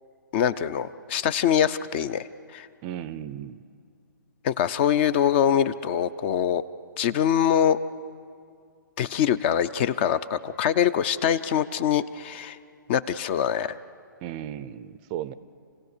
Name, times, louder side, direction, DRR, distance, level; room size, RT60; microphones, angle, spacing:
voice 1, 0.3-2.3 2.5-2.7 4.4-6.6 7.0-7.8 9.0-12.6 12.9-13.8, left 9 dB, 30° left, 16 dB, 0.5 m, -24 dB
voice 2, 2.8-3.6 14.2-15.3, right 11 dB, 25° right, 16 dB, 0.5 m, -35 dB
29.0 x 16.5 x 6.7 m, 2.3 s
hypercardioid pair, 145°, 11 cm